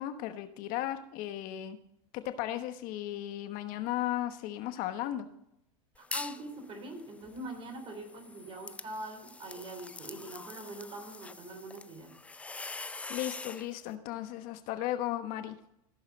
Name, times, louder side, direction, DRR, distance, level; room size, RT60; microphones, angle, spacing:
voice 1, 0.0-1.8 2.1-5.3 13.1-15.6, left 13 dB, 55° left, 9 dB, 1.2 m, -35 dB
sound 1, 5.9-6.5 6.9-13.7, left 3 dB, 5° left, 0.4 m, -44 dB
voice 2, 6.0-12.1 12.5-12.6, right 1 dB, 30° right, 5 dB, 3.5 m, -43 dB
15.0 x 7.2 x 4.0 m, 0.78 s
supercardioid pair, 115°, 18 cm